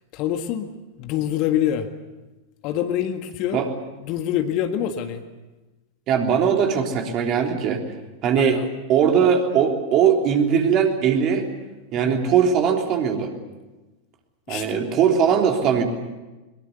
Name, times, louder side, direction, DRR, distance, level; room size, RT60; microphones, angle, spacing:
voice 1, 0.1-0.7 1.0-1.9 2.6-3.6 3.9-5.2 8.4-8.7 12.0-12.2 14.5-14.9, left 10 dB, 40° left, 7 dB, 1.8 m, -25 dB
voice 2, 6.1-7.8 8.2-8.6 8.9-11.5 11.9-13.3 14.5-15.8, right 7 dB, 35° right, 3 dB, 3.5 m, -20 dB
22.5 x 22.5 x 8.3 m, 1.1 s
figure-of-eight pair, 90°, 0 cm